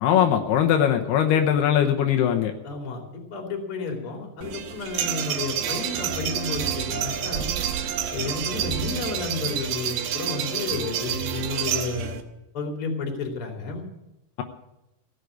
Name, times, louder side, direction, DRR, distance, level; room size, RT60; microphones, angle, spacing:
voice 1, 0.0-2.5, left 9 dB, 80° left, 4 dB, 3.0 m, -20 dB
voice 2, 2.6-7.5 8.1-12.2 12.5-13.9, left 4 dB, 35° left, 2 dB, 3.2 m, -32 dB
sound 1, 4.4-12.2, right 9 dB, 85° right, 3.2 m, -28 dB
16.5 x 8.3 x 9.3 m, 0.90 s
omnidirectional pair, 4.6 m